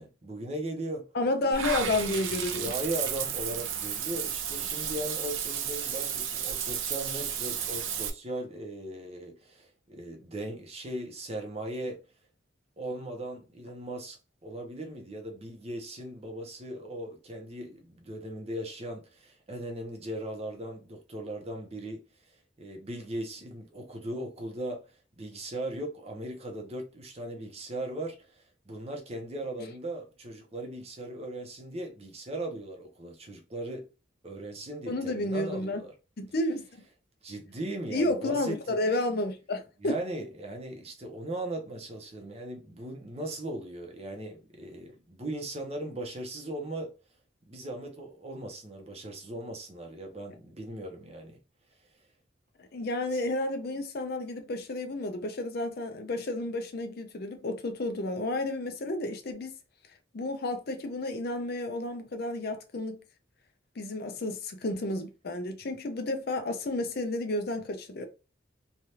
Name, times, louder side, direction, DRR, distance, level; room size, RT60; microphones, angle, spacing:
voice 1, 0.0-1.1 2.6-12.0 12.8-24.9 25.2-33.8 34.2-35.9 37.2-38.8 39.8-46.9 47.5-51.4 53.1-53.2, right 1 dB, 30° right, 0.7 m, -38 dB
voice 2, 1.1-2.7 34.9-35.8 36.2-36.6 37.9-39.9 52.6-59.6 60.1-63.0 63.8-68.1, left 2 dB, 50° left, 0.5 m, -31 dB
Water / Bathtub (filling or washing), 1.5-8.1, right 8 dB, 75° right, 0.5 m, -33 dB
3.3 x 2.3 x 2.7 m
head